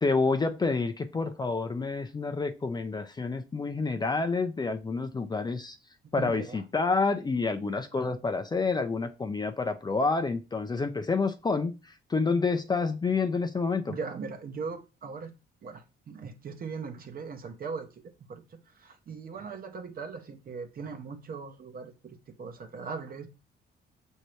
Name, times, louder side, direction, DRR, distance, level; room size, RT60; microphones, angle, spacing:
voice 1, 0.0-5.8 6.1-13.9, left 4 dB, 20° left, 0.4 m, -28 dB
voice 2, 6.1-6.6 13.8-15.3 15.6-18.0 18.3-23.3, right 5 dB, 50° right, 0.8 m, -39 dB
6.3 x 2.7 x 3.1 m
cardioid pair, 90°, 20 cm